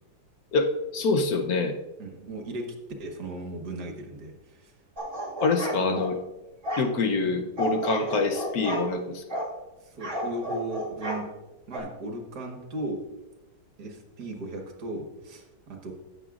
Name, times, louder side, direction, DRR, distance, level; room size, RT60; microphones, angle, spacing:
voice 1, 0.5-1.8 5.4-6.2 6.8-9.4, left 3 dB, 65° left, 6 dB, 1.0 m, -26 dB
voice 2, 2.0-2.7 3.0-4.7 5.8-6.0 7.2-7.4 9.8-11.3 11.7-13.0 13.8-15.9, right 2 dB, 55° right, 3 dB, 1.8 m, -36 dB
sound 1, 5.0-6.1 6.6-6.9 7.6-8.9 9.3-9.5 10.0-11.2 11.7-11.8, equal, 40° right, 2.0 m, -31 dB
15.5 x 6.9 x 2.4 m, 1.1 s
omnidirectional pair, 2.2 m